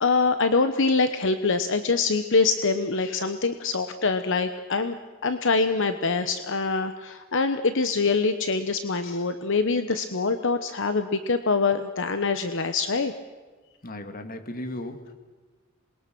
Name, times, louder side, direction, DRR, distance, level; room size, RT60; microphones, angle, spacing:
voice 1, 0.0-4.9 5.2-13.1, left 4 dB, 60° left, 9 dB, 1.0 m, -24 dB
voice 2, 13.8-15.1, left 1 dB, 40° left, 7 dB, 1.9 m, -36 dB
27.0 x 21.5 x 6.1 m, 1.3 s
head